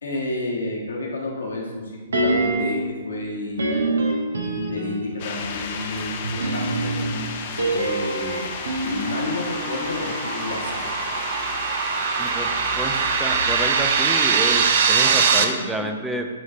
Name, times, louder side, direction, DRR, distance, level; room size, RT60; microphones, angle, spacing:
voice 1, 0.0-2.8 3.0-3.9 4.4-6.9 7.6-8.5 8.8-10.8 15.8-15.9, left 2 dB, 75° left, -3 dB, 1.5 m, -30 dB
sound 1, 2.1-2.9 3.6-5.2 6.2-10.5 10.7-10.8, right 2 dB, 75° right, 1.0 m, -26 dB
sound 2, 5.2-14.6, left 6 dB, 45° left, 0.7 m, -33 dB
sound 3, 7.7-15.4, right 6 dB, 55° right, 0.6 m, -23 dB
voice 2, 12.2-16.3, right 1 dB, 5° right, 4 dB, 0.6 m, -29 dB
8.7 x 3.2 x 3.8 m, 1.4 s
hypercardioid pair, 125°, 0 cm